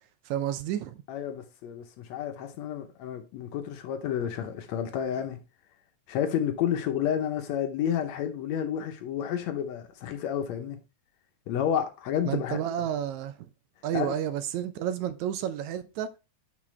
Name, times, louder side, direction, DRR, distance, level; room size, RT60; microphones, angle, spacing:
voice 1, 0.3-1.0 12.3-13.5 13.8-16.1, right 10 dB, 75° right, 1.9 m, -31 dB
voice 2, 1.1-5.4 6.1-10.8 11.5-12.6 13.9-14.1, left 9 dB, 70° left, 1.9 m, -30 dB
7.3 x 6.0 x 3.2 m
omnidirectional pair, 3.5 m